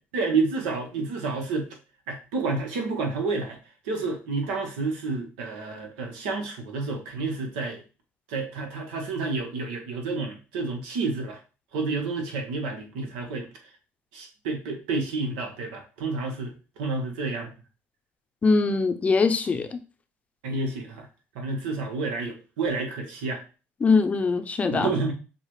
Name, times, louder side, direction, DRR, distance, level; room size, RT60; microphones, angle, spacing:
voice 1, 0.1-1.7 2.1-3.6 3.8-7.8 8.3-11.4 11.7-13.5 14.1-17.5 20.4-21.1 21.3-23.4 24.7-25.1, right 3 dB, 90° right, 1.2 m, -29 dB
voice 2, 18.4-19.8 23.8-24.9, left 4 dB, 30° left, 0.6 m, -22 dB
6.5 x 2.4 x 3.2 m
supercardioid pair, 95°, 5 cm